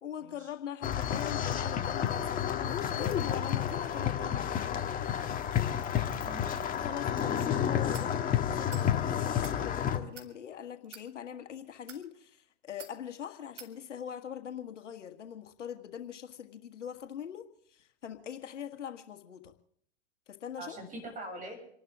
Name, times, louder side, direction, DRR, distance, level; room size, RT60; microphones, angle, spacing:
voice 1, 0.0-5.5 6.7-19.5 20.3-20.8, left 9 dB, 80° left, 6 dB, 1.7 m, -42 dB
sound 1, 0.8-10.0, left 9 dB, 25° left, 1.7 m, -30 dB
voice 2, 6.0-6.9 7.2-7.8 20.6-21.6, right 1 dB, 20° right, 2 dB, 7.5 m, -45 dB
sound 2, 7.9-8.1 8.7-8.9 9.3-9.6 10.1-10.3 10.8-11.1 11.7-12.0 12.8-13.0 13.6-13.7, right 5 dB, 90° right, 2.7 m, -47 dB
28.0 x 12.0 x 3.6 m, 0.67 s
hypercardioid pair, 110°, 36 cm